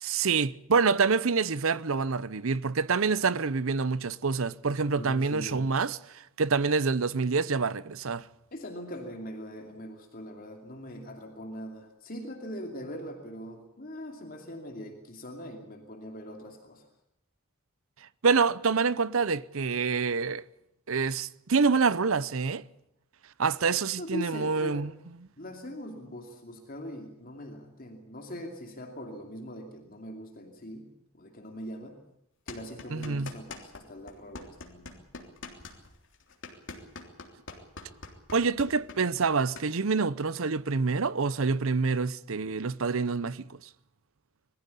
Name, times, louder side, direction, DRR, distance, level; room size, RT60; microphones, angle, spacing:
voice 1, 0.0-8.2 18.2-20.4 20.9-22.6 23.4-24.9 32.9-33.3 38.3-43.5, right 4 dB, 65° right, 0.7 m, -27 dB
voice 2, 4.9-5.7 8.5-16.9 24.0-24.8 25.4-30.9 31.2-32.0 32.5-34.9, equal, 40° left, 2.7 m, -41 dB
sound 1, 32.5-33.8 34.1-39.7, left 3 dB, 60° left, 3.4 m, -43 dB
22.0 x 15.0 x 10.0 m
head